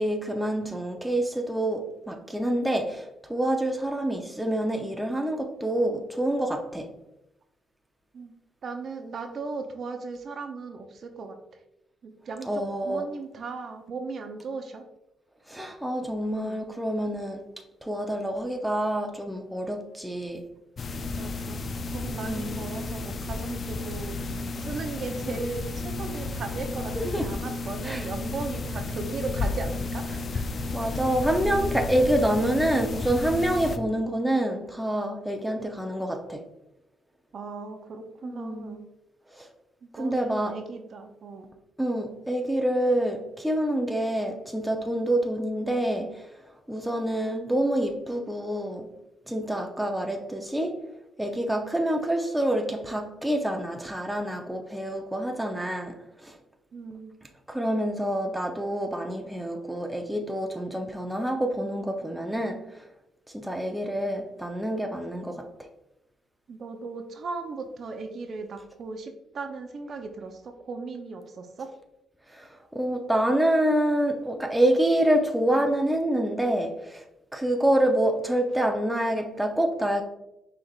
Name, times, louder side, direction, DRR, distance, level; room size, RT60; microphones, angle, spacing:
voice 1, 0.0-6.9 12.4-13.0 15.5-17.5 17.8-20.4 22.2-22.7 27.0-27.3 27.8-28.1 30.5-36.4 38.2-38.8 39.4-39.5 40.0-40.6 41.8-46.3 46.7-48.9 49.3-50.8 51.2-55.9 56.2-56.3 57.5-62.8 63.3-65.7 72.3-77.0 77.3-80.0, right 1 dB, 5° right, 3 dB, 0.5 m, -27 dB
voice 2, 8.6-11.4 12.0-14.8 16.4-16.7 21.2-30.4 37.3-38.8 39.8-41.5 56.7-57.2 66.5-71.7, right 4 dB, 55° right, 6 dB, 0.5 m, -37 dB
sound 1, 20.8-33.8, left 3 dB, 45° left, 0.3 m, -32 dB
5.4 x 3.3 x 2.3 m, 0.88 s
cardioid pair, 90°, 0 cm